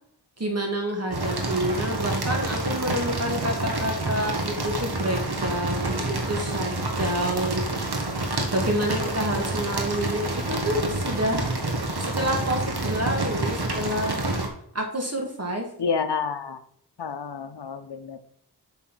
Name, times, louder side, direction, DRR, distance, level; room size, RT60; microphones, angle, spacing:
voice 1, 0.4-6.7 7.0-8.0 8.5-11.5 12.0-14.2 14.7-15.7, right 1 dB, 40° right, 2 dB, 2.0 m, -28 dB
sound 1, 1.1-14.5, right 2 dB, 70° right, 1.5 m, -28 dB
voice 2, 15.8-16.6 17.0-18.2, left 5 dB, 80° left, 9 dB, 0.8 m, -29 dB
7.5 x 4.0 x 6.1 m, 0.66 s
wide cardioid pair, 65°, 41 cm